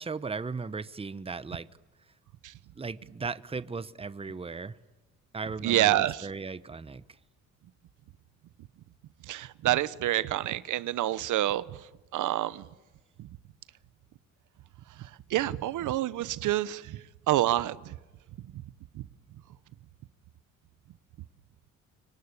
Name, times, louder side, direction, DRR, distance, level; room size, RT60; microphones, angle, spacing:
voice 1, 0.0-1.7 2.8-4.8 5.3-7.0, right 4 dB, 20° right, 1.0 m, -37 dB
voice 2, 5.6-6.3 9.3-11.6 12.1-12.6 15.3-17.0 17.3-17.9, right 14 dB, 80° right, 1.0 m, -27 dB
26.0 x 23.5 x 9.8 m
cardioid pair, 90°, 30 cm